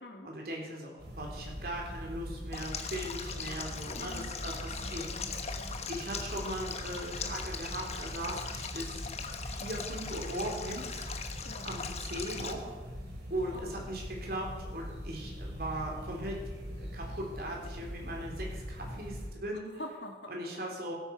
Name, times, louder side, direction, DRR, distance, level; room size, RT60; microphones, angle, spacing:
voice 1, 0.2-5.2 5.9-9.0 9.4-11.0 11.6-12.7 13.3-16.4 16.8-19.7 20.3-20.9, right 1 dB, 60° right, -1 dB, 3.7 m, -39 dB
sound 1, 1.0-19.3, equal, 75° right, 4.1 m, -42 dB
Stream, 2.5-12.5, left 6 dB, 35° left, 1.1 m, -40 dB
voice 2, 3.9-4.4 4.8-5.8 11.4-11.7 13.5-13.7 19.5-20.6, left 1 dB, 85° left, 3 dB, 2.0 m, -47 dB
16.0 x 9.1 x 6.0 m, 1.3 s
head